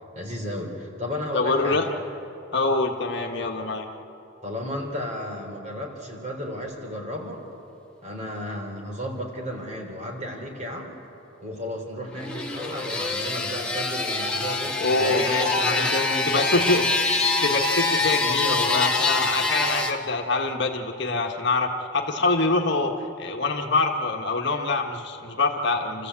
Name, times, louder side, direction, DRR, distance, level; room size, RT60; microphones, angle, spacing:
voice 1, 0.1-1.8 4.4-7.4 8.0-11.0 11.4-16.8 19.4-19.5, left 1 dB, 35° right, 0 dB, 3.8 m, -33 dB
voice 2, 1.3-1.8 2.5-3.9 14.8-16.8 17.4-22.9 23.2-26.1, left 3 dB, 55° left, 2 dB, 1.6 m, -25 dB
sound 1, 12.1-19.9, left 3 dB, 5° left, 1.6 m, -25 dB
29.5 x 14.5 x 8.3 m, 3.0 s
head